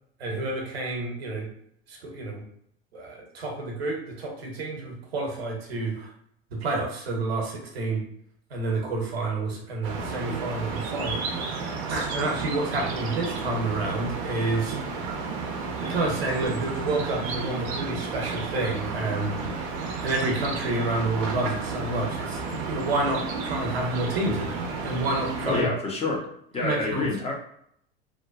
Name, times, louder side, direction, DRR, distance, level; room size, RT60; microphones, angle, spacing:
voice 1, 0.2-1.5 1.9-2.4 2.9-6.1 6.5-8.0 8.5-14.8 15.8-19.4 19.6-25.7 26.6-27.1, right 2 dB, 75° right, 0 dB, 0.7 m, -29 dB
sound 1, 9.8-25.6, right 4 dB, 45° right, 0.6 m, -32 dB
voice 2, 25.5-26.3 26.5-27.3, left 3 dB, 20° left, -1 dB, 0.6 m, -27 dB
2.5 x 2.1 x 2.4 m, 0.69 s
figure-of-eight pair, 80°, 31 cm